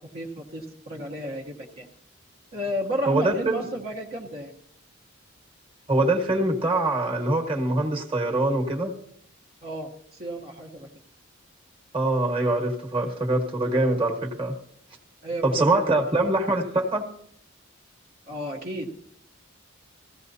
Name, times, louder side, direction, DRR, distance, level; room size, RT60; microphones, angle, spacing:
voice 1, 0.0-1.9 2.5-4.5 9.6-10.9 15.2-16.0 18.3-18.9, equal, 45° right, -3 dB, 1.2 m, -33 dB
voice 2, 3.1-3.7 5.9-8.9 11.9-14.6 15.4-17.0, right 2 dB, 25° right, 2 dB, 1.5 m, -24 dB
15.5 x 15.5 x 2.8 m, 0.66 s
head